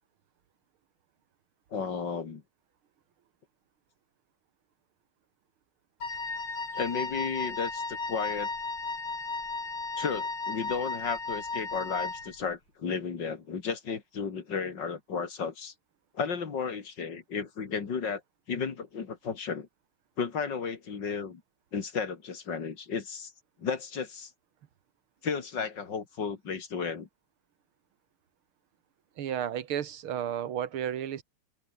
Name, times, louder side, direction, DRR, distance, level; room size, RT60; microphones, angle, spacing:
voice 1, 1.7-2.4 6.7-8.5 10.0-15.7 16.1-18.2 18.5-19.7 20.2-21.4 21.7-23.3 23.6-24.3 25.2-27.1, left 5 dB, 60° left, 2.8 m, -33 dB
Wind instrument woodwind instrument, 6.0-12.4, left 3 dB, 85° left, 6.0 m, -34 dB
voice 2, 29.2-31.2, right 9 dB, 80° right, 2.3 m, -32 dB
open air
omnidirectional pair, 2.3 m